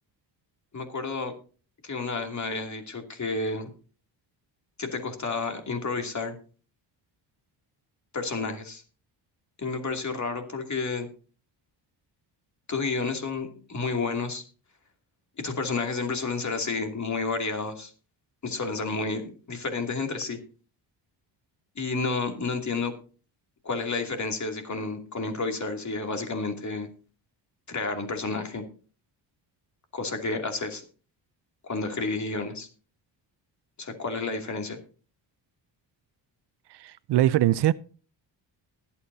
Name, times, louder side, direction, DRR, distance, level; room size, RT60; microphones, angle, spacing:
voice 1, 0.7-1.3 1.8-3.7 4.8-6.4 8.1-8.8 9.6-11.1 12.7-14.4 15.4-17.9 18.4-20.4 21.8-22.9 23.6-26.9 27.7-28.6 29.9-30.8 31.6-32.7 33.8-34.8, left 3 dB, 40° left, 2.8 m, -30 dB
voice 2, 36.8-37.7, right 14 dB, 65° right, 0.6 m, -22 dB
20.5 x 8.7 x 2.8 m
cardioid pair, 80°, 44 cm